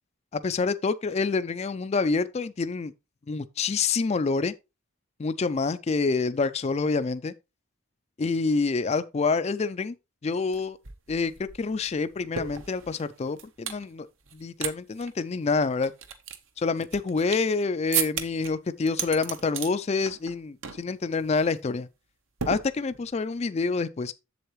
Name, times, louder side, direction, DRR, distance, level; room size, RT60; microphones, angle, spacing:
voice 1, 0.3-2.9 3.3-4.5 5.2-7.3 8.2-9.9 10.2-10.8 11.1-11.3 11.6-14.1 14.3-15.9 16.6-21.9 22.5-24.1, left 4 dB, 30° left, 0.4 m, -27 dB
sound 1, 10.5-10.6 10.8-13.8 14.3-14.7 15.0-15.1 15.6-17.5 17.9-18.5 18.9-19.7 20.1-20.4 20.6-20.9 21.2-21.4 22.4-23.2, right 8 dB, 70° right, 1.0 m, -34 dB
7.8 x 7.4 x 3.1 m
head